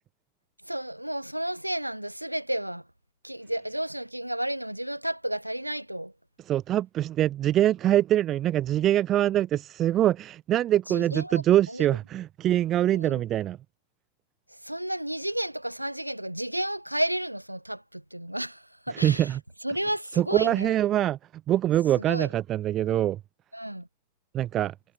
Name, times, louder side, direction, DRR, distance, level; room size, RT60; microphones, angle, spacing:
voice 1, 0.7-2.8 3.2-6.1 10.9-11.4 11.7-11.9 12.9-13.2 14.6-19.3 19.6-20.7 22.0-22.3 23.5-23.9, right 1 dB, 90° right, 1.4 m, -32 dB
voice 2, 6.5-13.6 18.9-19.4 20.2-21.2 21.5-23.2 24.3-24.7, right 12 dB, 30° right, 0.3 m, -24 dB
figure-of-eight pair, 90°, 0 cm